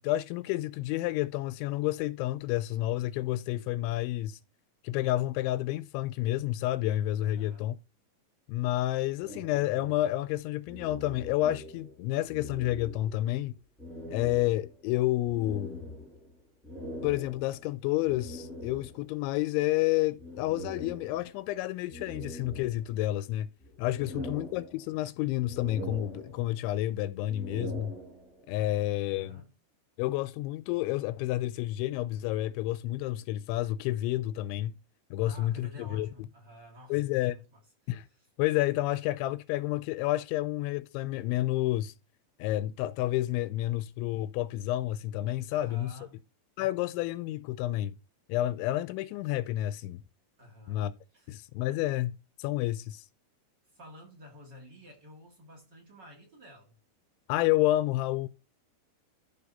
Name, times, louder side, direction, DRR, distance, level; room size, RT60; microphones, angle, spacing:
voice 1, 0.0-4.4 4.8-7.7 8.5-13.6 14.1-15.8 17.0-23.5 23.8-28.0 28.5-29.4 30.0-34.8 35.1-36.1 36.9-37.4 37.9-38.0 38.4-41.9 42.4-45.9 46.6-48.0 48.3-50.0 50.7-50.9 51.3-52.1 52.4-53.1 57.3-58.3, left 15 dB, 85° left, 2.9 m, -30 dB
voice 2, 7.2-7.7 23.9-24.3 28.9-29.5 35.2-38.3 45.5-46.2 50.4-50.9 51.1-51.4 53.7-56.8, left 1 dB, 30° right, 2.1 m, -52 dB
sound 1, 9.2-12.0 12.3-13.4 13.8-19.2 20.2-21.5 21.9-23.2 23.6-25.1 25.4-26.7 27.2-28.5, equal, ahead, 2.3 m, -43 dB
13.5 x 4.8 x 4.1 m
omnidirectional pair, 5.3 m